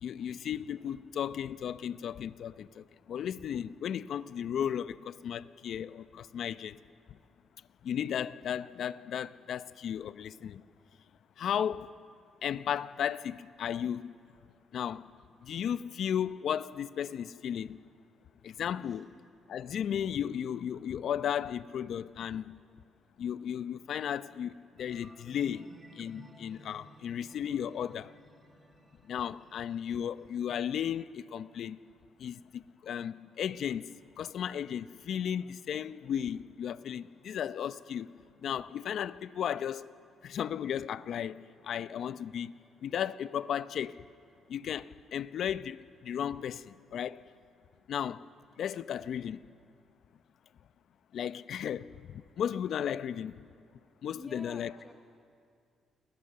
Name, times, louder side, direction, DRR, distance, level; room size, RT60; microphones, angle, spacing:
voice 1, 0.0-6.8 7.1-7.2 7.8-10.6 11.4-11.9 12.4-14.1 14.7-15.1 15.4-17.8 18.4-19.1 19.5-22.6 23.2-25.7 25.9-28.1 29.0-31.8 32.2-39.9 40.2-42.5 42.8-44.0 44.5-47.2 47.9-48.3 48.6-49.4 51.1-53.4 54.0-54.7, left 9 dB, 65° left, 0.7 m, -35 dB
voice 2, 18.8-19.2 54.1-54.9, equal, 5° left, 1.4 m, -50 dB
sound 1, 24.8-31.8, right 2 dB, 25° right, 2.5 m, -57 dB
29.5 x 21.5 x 6.8 m
cardioid pair, 90°, 0 cm